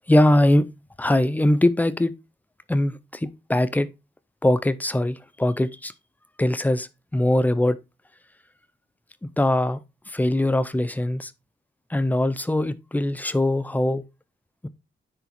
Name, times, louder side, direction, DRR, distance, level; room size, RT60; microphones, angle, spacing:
voice 1, 0.1-0.7 1.0-2.1 2.7-3.9 4.4-5.9 6.4-7.8 9.4-9.8 10.1-11.3 11.9-14.0 14.6-14.7, left 1 dB, 10° left, 0.5 m, -21 dB
9.7 x 4.9 x 3.4 m
wide cardioid pair, 165°, 21 cm